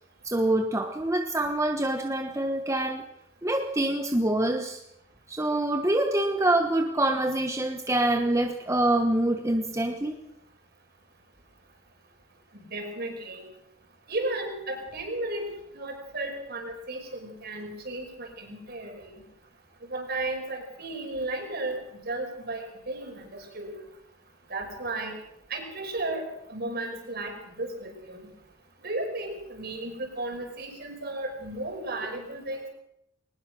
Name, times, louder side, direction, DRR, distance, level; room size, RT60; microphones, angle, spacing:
voice 1, 0.2-3.0 3.4-4.8 5.3-10.2, right 1 dB, 15° right, 4 dB, 1.3 m, -25 dB
voice 2, 12.7-13.4 14.1-19.1 19.8-23.8 24.5-25.2 25.5-26.2 26.5-28.3 28.8-32.7, right 2 dB, 50° right, 3 dB, 5.6 m, -34 dB
21.5 x 19.5 x 6.3 m, 0.78 s
head